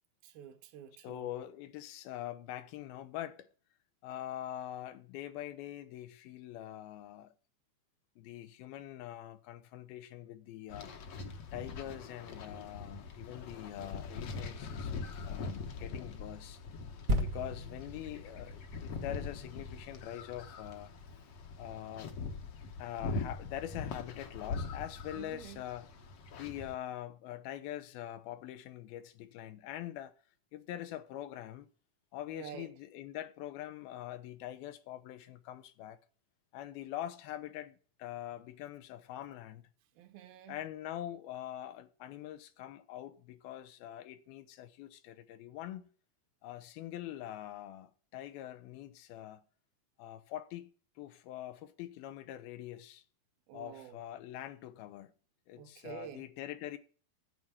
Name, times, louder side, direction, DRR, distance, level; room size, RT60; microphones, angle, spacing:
voice 1, 0.2-1.3 25.1-25.6 32.3-32.7 40.0-40.7 53.5-54.0 55.6-56.3, right 10 dB, 75° right, 2.8 m, -49 dB
voice 2, 0.9-3.5 4.0-7.3 8.2-10.9 11.5-14.9 15.2-16.6 17.2-20.9 21.6-22.2 22.8-25.9 26.3-30.1 30.5-31.7 32.1-36.0 36.5-39.7 40.5-45.8 46.4-49.5 50.0-50.7 51.0-53.0 53.5-55.1 55.5-56.8, left 12 dB, 85° left, 2.8 m, -44 dB
sound 1, 10.7-26.8, left 4 dB, 60° left, 1.7 m, -42 dB
sound 2, 17.1-20.7 21.3-21.4, equal, 55° right, 1.1 m, -37 dB
9.2 x 8.7 x 5.5 m
omnidirectional pair, 4.3 m